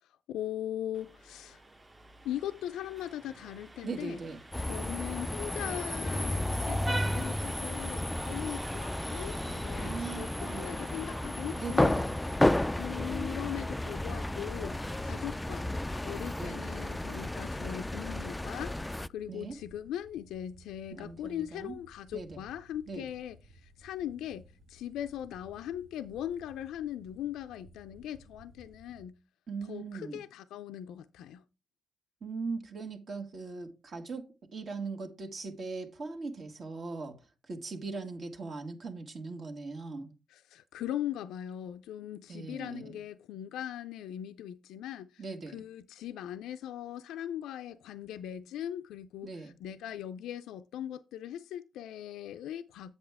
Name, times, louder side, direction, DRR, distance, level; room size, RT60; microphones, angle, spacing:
voice 1, 0.0-1.6 2.2-4.2 4.7-12.0 12.7-15.7 16.0-29.2 29.7-31.4 40.3-45.2 45.5-52.9, left 11 dB, 85° left, 0.4 m, -40 dB
Vehicle horn car horn honking, 0.9-17.8, right 2 dB, 20° right, 0.8 m, -47 dB
voice 2, 3.8-4.4 9.8-10.8 11.6-12.2 16.4-16.6 19.3-19.6 20.9-21.7 22.1-22.4 22.9-23.1 29.5-30.2 32.2-40.1 42.3-42.9 45.2-45.7 49.2-49.5, right 4 dB, 45° right, 1.6 m, -40 dB
sound 1, 4.5-19.1, left 1 dB, 10° left, 0.3 m, -32 dB
sound 2, 11.4-29.1, right 1 dB, 70° right, 1.4 m, -57 dB
8.0 x 7.0 x 3.5 m
cardioid pair, 90°, 0 cm